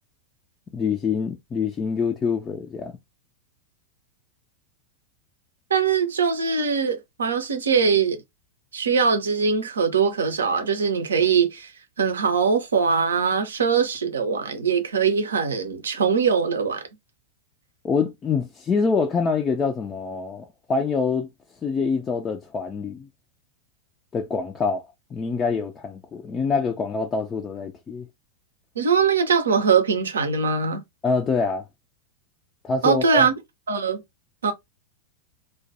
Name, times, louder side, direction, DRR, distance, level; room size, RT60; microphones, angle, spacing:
voice 1, 0.7-3.0 17.8-21.3 21.6-23.1 24.1-24.8 25.1-28.1 31.0-31.7 32.6-33.3, left 5 dB, 20° left, 0.3 m, -25 dB
voice 2, 5.7-8.2 8.7-11.7 12.0-16.8 28.8-30.8 32.8-33.3 33.7-34.0 34.4-34.5, right 5 dB, 70° right, 0.5 m, -22 dB
2.2 x 2.1 x 2.7 m
figure-of-eight pair, 90°, 0 cm